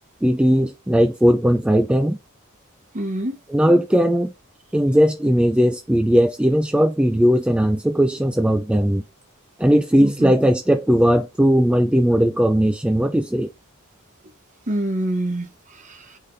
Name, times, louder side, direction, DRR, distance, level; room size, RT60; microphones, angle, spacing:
voice 1, 0.2-2.2 3.5-4.3 4.7-9.0 9.6-13.5, equal, 5° right, 0.3 m, -18 dB
voice 2, 2.9-3.4 10.0-10.3 14.7-16.2, right 1 dB, 35° right, 1.0 m, -26 dB
4.9 x 3.5 x 2.6 m
head